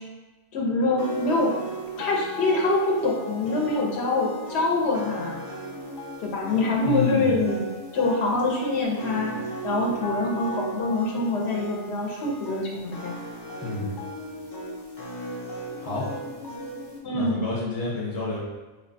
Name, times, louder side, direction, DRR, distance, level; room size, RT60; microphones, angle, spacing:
voice 1, 0.5-1.6 2.0-5.4 6.2-7.6 7.9-9.3 9.6-13.1 17.0-17.4, left 2 dB, 80° left, -2 dB, 0.9 m, -25 dB
sound 1, 1.0-17.0, right 1 dB, 45° left, 0.3 m, -36 dB
voice 2, 6.8-7.3 13.6-13.9 15.8-16.1 17.1-18.4, left 3 dB, 20° left, -6 dB, 0.7 m, -28 dB
3.6 x 2.1 x 2.6 m, 1.2 s
omnidirectional pair, 1.1 m